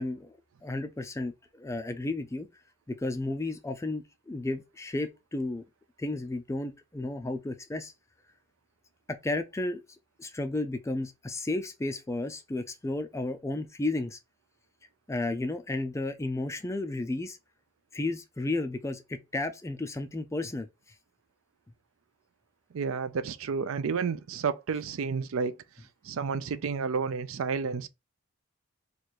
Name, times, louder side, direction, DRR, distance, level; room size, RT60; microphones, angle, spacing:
voice 1, 0.0-2.5 2.9-5.6 6.0-7.9 9.1-9.8 10.2-14.2 15.1-17.4 17.9-20.7, left 2 dB, 15° left, 0.3 m, -33 dB
voice 2, 22.7-25.6 26.0-27.9, right 5 dB, 70° right, 0.4 m, -31 dB
3.1 x 2.5 x 4.4 m
head